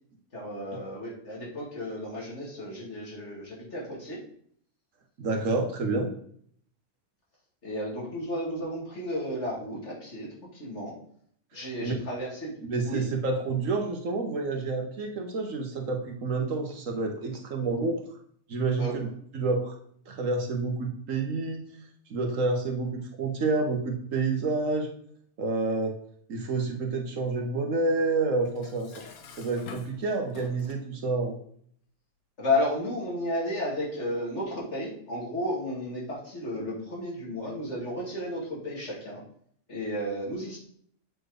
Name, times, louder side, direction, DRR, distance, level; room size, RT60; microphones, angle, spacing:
voice 1, 0.3-4.2 7.6-11.0 11.5-12.5 12.8-13.0 18.8-19.0 32.4-39.2 39.7-40.6, left 1 dB, 50° left, -4 dB, 2.6 m, -33 dB
voice 2, 5.2-6.1 11.5-11.9 12.6-18.0 18.5-19.1 19.3-19.7 20.1-21.6 22.1-24.9 25.4-25.9 26.3-28.9 29.4-31.4, right 3 dB, 60° right, 3 dB, 1.4 m, -29 dB
Dishes pots and pans, 28.5-30.9, left 6 dB, 75° left, 1.3 m, -47 dB
7.8 x 4.3 x 5.0 m, 0.63 s
omnidirectional pair, 1.5 m